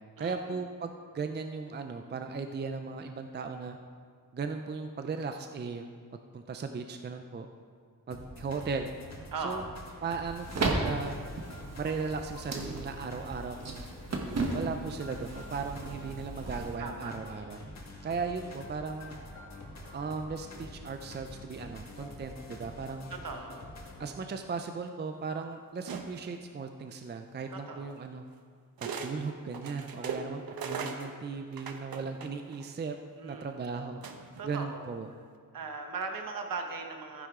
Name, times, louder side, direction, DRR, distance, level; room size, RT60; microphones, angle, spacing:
voice 1, 0.2-3.8 4.3-5.9 6.3-7.5 8.1-8.9 9.4-9.6 10.0-11.2 11.7-13.9 14.5-17.6 18.0-19.2 19.9-23.1 24.0-28.2 28.8-33.0 33.2-34.0 34.4-35.1, right 4 dB, 30° right, 6 dB, 0.4 m, -37 dB
sound 1, 8.1-24.1, left 1 dB, 50° left, 1.8 m, -46 dB
voice 2, 9.3-9.8 16.8-17.3 23.1-23.7 27.5-27.9 30.0-30.5 33.2-33.6 34.4-34.9 35.5-37.3, right 4 dB, 70° right, 4 dB, 1.2 m, -39 dB
sound 2, 10.3-16.8, right 2 dB, 50° right, 1.3 m, -35 dB
sound 3, 25.9-26.4 27.5-27.6 28.8-29.1 29.5-32.6 34.0-34.5, right 5 dB, 90° right, 1.0 m, -39 dB
14.5 x 10.0 x 3.7 m, 2.1 s
wide cardioid pair, 175°, 35 cm